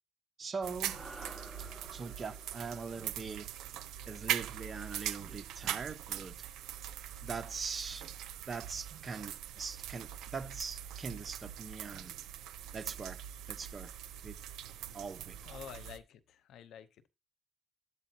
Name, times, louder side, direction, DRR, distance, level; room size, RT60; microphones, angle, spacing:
voice 1, 0.4-1.0 1.9-3.5 4.1-6.4 7.2-8.0 8.5-12.2 12.7-13.9 14.2-14.4 14.9-15.6, right 5 dB, 35° right, 1.0 m, -42 dB
sound 1, 0.6-16.0, right 11 dB, 85° right, 0.7 m, -42 dB
sound 2, 0.8-5.3, right 2 dB, ahead, 5.3 m, -53 dB
voice 2, 15.4-17.1, left 9 dB, 80° left, 0.8 m, -49 dB
12.0 x 8.4 x 2.9 m
cardioid pair, 90°, 0 cm